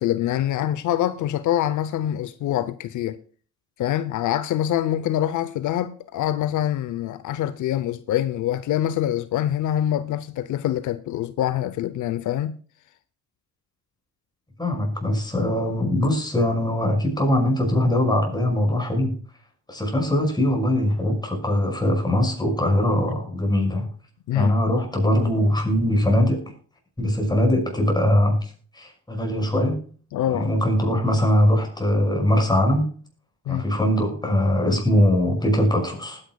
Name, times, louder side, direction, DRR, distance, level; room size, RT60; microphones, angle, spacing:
voice 1, 0.0-3.2 3.8-12.6 24.3-24.5 30.1-30.6 33.5-33.6, left 11 dB, 80° left, 0.7 m, -25 dB
voice 2, 14.6-19.1 19.7-23.9 24.3-26.4 27.0-28.4 28.7-29.8 30.3-32.9 33.5-36.2, left 1 dB, 15° left, 5.9 m, -21 dB
19.5 x 9.9 x 2.3 m
cardioid pair, 90°, 30 cm